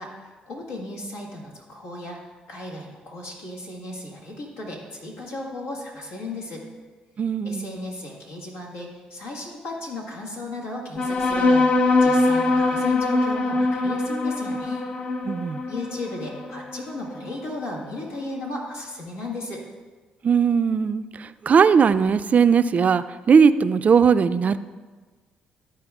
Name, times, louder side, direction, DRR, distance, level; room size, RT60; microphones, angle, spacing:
voice 1, 0.0-2.2 2.5-6.6 7.4-14.8 15.7-19.6, left 2 dB, 85° left, -3 dB, 1.9 m, -35 dB
voice 2, 7.2-7.8 15.3-15.6 20.2-24.6, right 6 dB, 45° right, 13 dB, 0.4 m, -19 dB
sound 1, 11.0-17.9, left 2 dB, 40° left, 0.9 m, -23 dB
13.0 x 4.4 x 3.6 m, 1.4 s
hypercardioid pair, 55°, 3 cm